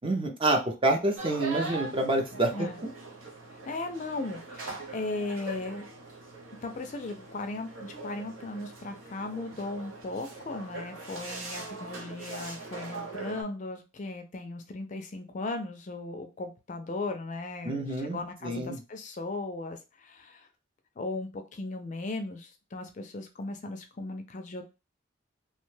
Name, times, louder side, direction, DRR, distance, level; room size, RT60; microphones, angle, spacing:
voice 1, 0.0-2.7 17.7-18.8, right 2 dB, 25° right, 3 dB, 0.5 m, -27 dB
sound 1, 1.2-13.4, right 2 dB, 85° right, 0.7 m, -41 dB
voice 2, 3.5-5.9 6.6-20.5 21.0-24.7, left 2 dB, 35° left, 6 dB, 0.4 m, -37 dB
2.8 x 2.2 x 3.1 m, 0.28 s
head